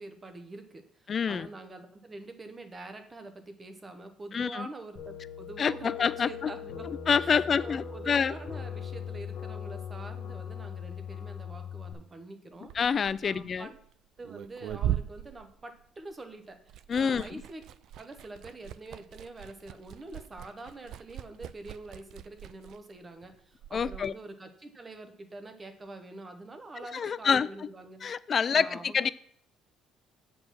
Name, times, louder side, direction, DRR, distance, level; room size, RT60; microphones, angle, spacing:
voice 1, 0.0-6.9 7.2-12.7 13.2-13.8 14.2-17.6 18.0-28.1 28.5-29.1, right 2 dB, 20° right, 7 dB, 1.0 m, -45 dB
voice 2, 1.1-1.5 4.3-4.7 5.6-6.5 7.1-8.4 12.7-13.7 16.9-17.2 23.7-24.1 26.9-27.5 28.0-29.1, left 6 dB, 35° left, 18 dB, 0.3 m, -27 dB
sound 1, 5.0-11.9, left 7 dB, 80° left, 1.3 m, -40 dB
Liquid, 12.5-16.2 16.5-24.1, right 11 dB, 65° right, 0.4 m, -39 dB
7.6 x 4.7 x 5.9 m, 0.64 s
cardioid pair, 125°, 0 cm